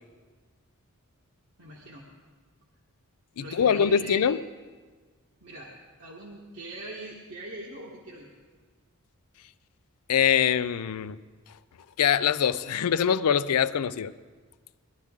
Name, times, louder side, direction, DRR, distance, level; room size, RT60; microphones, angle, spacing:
voice 1, 1.6-2.1 3.4-4.3 5.4-8.3, right 1 dB, 60° right, 1.5 m, -41 dB
voice 2, 3.4-4.4 10.1-11.2 12.0-14.1, left 8 dB, 90° left, 0.4 m, -23 dB
19.5 x 12.0 x 3.7 m
head